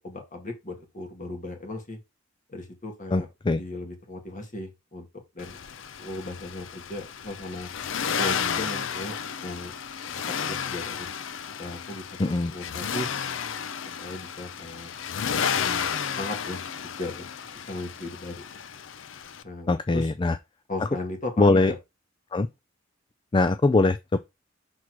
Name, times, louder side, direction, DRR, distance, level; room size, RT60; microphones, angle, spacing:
voice 1, 0.0-2.0 2.5-3.3 3.6-5.1 5.3-5.6 6.0-7.7 8.2-9.2 9.4-9.7 10.4-11.1 11.6-12.1 12.5-13.1 14.0-14.9 16.2-16.6 17.0-18.4 19.4-20.1 20.7-21.8, left 2 dB, 40° left, 2.0 m, -36 dB
voice 2, 3.1-3.6 12.2-12.5 19.7-20.4 20.8-20.9 21.4-21.7 22.3-22.5 23.3-24.2, left 2 dB, 25° left, 0.4 m, -22 dB
Accelerating revving vroom, 5.4-19.4, left 7 dB, 70° left, 0.6 m, -32 dB
6.0 x 4.3 x 4.8 m
head